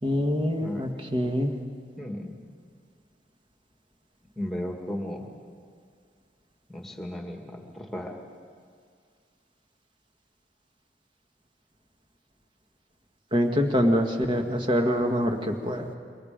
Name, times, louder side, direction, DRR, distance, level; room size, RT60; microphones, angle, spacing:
voice 1, 0.0-1.5 13.3-15.9, equal, 30° right, 4 dB, 1.7 m, -25 dB
voice 2, 2.0-2.3 4.4-5.3 6.7-8.2, left 1 dB, ahead, 2 dB, 2.2 m, -35 dB
27.0 x 24.0 x 5.2 m, 2.1 s
head